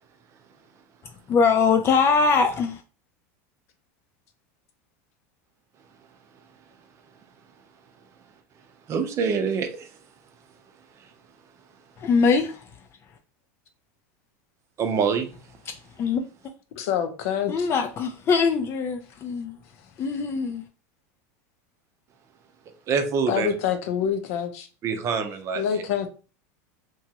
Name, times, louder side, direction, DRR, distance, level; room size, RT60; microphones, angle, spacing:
voice 1, 1.3-2.8 12.0-12.6 15.7-15.8 16.0-16.2 17.5-19.6 20.0-20.6, left 5 dB, 30° left, 0.3 m, -22 dB
voice 2, 8.9-9.9 14.8-15.3 22.9-23.5 24.8-25.8, right 5 dB, 35° right, 0.6 m, -25 dB
voice 3, 16.8-17.7 23.3-24.7 25.6-26.1, left 8 dB, 75° left, 0.6 m, -26 dB
2.9 x 2.3 x 2.8 m
supercardioid pair, 125°, 8 cm